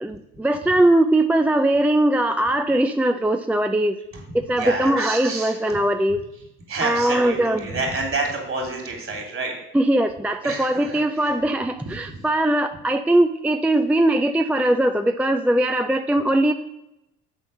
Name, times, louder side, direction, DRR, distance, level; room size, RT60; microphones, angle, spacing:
voice 1, 0.0-4.0 4.5-6.2 6.8-7.6 9.7-16.5, right 1 dB, 5° right, 7 dB, 0.4 m, -20 dB
voice 2, 4.1-5.8 6.3-9.5 10.4-12.2 13.9-14.2 14.6-14.7, right 3 dB, 45° right, 2 dB, 3.0 m, -30 dB
7.2 x 4.2 x 6.5 m, 0.87 s
supercardioid pair, 75°, 31 cm